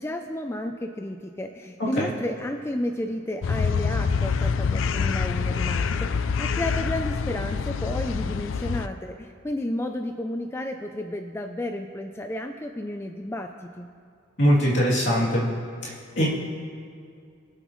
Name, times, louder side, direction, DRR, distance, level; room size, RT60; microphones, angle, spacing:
voice 1, 0.0-13.9, left 1 dB, 15° left, 5 dB, 0.4 m, -32 dB
voice 2, 1.8-2.1 14.4-15.5 15.8-16.3, equal, 65° left, -6 dB, 3.0 m, -22 dB
sound 1, 3.4-8.9, left 5 dB, 85° left, 0.4 m, -26 dB
22.5 x 8.0 x 3.1 m, 2.3 s
head